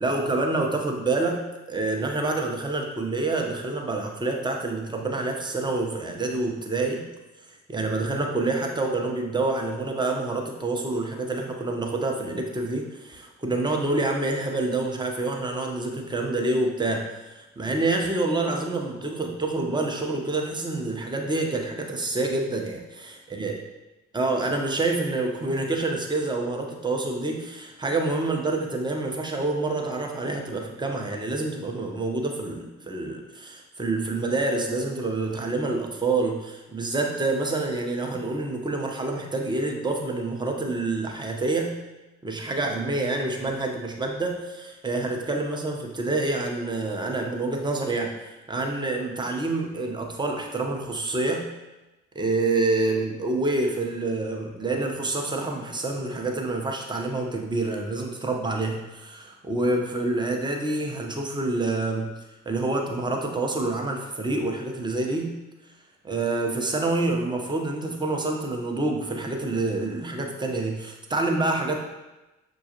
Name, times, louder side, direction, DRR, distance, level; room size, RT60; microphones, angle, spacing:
voice 1, 0.0-7.1 7.7-23.5 24.1-41.8 42.2-51.5 52.1-62.1 62.5-65.3 66.0-71.8, right 2 dB, 10° right, 1 dB, 0.7 m, -27 dB
6.1 x 2.3 x 2.9 m, 1.1 s
figure-of-eight pair, 40°, 35 cm